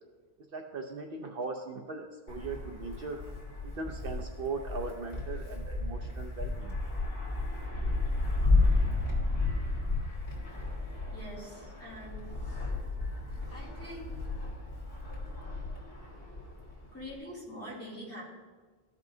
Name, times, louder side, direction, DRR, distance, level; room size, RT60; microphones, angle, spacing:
voice 1, 0.5-3.2 3.6-6.8, right 3 dB, 65° right, 3 dB, 0.8 m, -39 dB
Wind, 2.3-17.2, left 2 dB, 40° left, 1.9 m, -32 dB
voice 2, 11.1-12.2 13.5-14.2 15.8-15.9 16.9-18.2, equal, 15° left, -7 dB, 2.7 m, -44 dB
14.5 x 5.5 x 2.7 m, 1.4 s
omnidirectional pair, 1.1 m